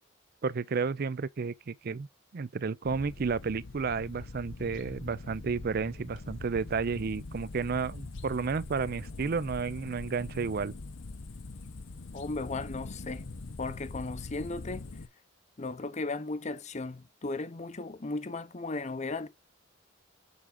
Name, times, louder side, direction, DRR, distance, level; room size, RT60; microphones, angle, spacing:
voice 1, 0.4-2.1 2.3-10.7, right 5 dB, 50° right, 0.5 m, -32 dB
sound 1, 2.8-15.1, left 3 dB, 70° left, 0.8 m, -43 dB
voice 2, 12.1-13.3 13.6-14.9 15.6-19.3, left 3 dB, 35° left, 0.7 m, -36 dB
7.0 x 4.9 x 3.7 m
head